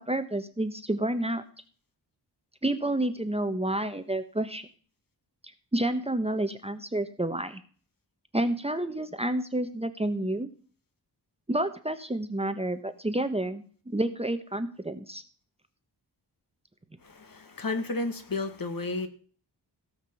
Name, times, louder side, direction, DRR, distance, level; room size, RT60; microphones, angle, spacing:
voice 1, 0.0-1.4 2.6-4.7 5.7-7.6 8.3-10.5 11.5-15.2, right 1 dB, 15° right, 9 dB, 1.0 m, -29 dB
voice 2, 17.0-19.1, left 3 dB, 55° left, 8 dB, 1.9 m, -32 dB
16.5 x 6.0 x 7.0 m, 0.43 s
wide cardioid pair, 95°, 41 cm